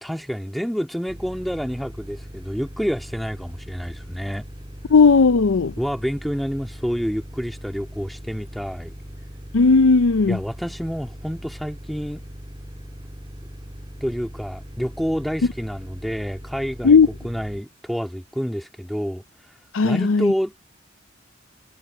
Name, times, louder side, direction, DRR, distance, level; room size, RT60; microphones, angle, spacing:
voice 1, 0.0-4.4 5.8-8.9 10.3-12.2 14.0-17.0 17.2-19.2 19.8-20.6, equal, ahead, 2.0 m, -28 dB
sound 1, 1.1-17.6, equal, 25° right, 3.4 m, -39 dB
voice 2, 4.9-5.7 9.5-10.4 16.8-17.1 19.7-20.3, left 4 dB, 80° left, 0.5 m, -15 dB
head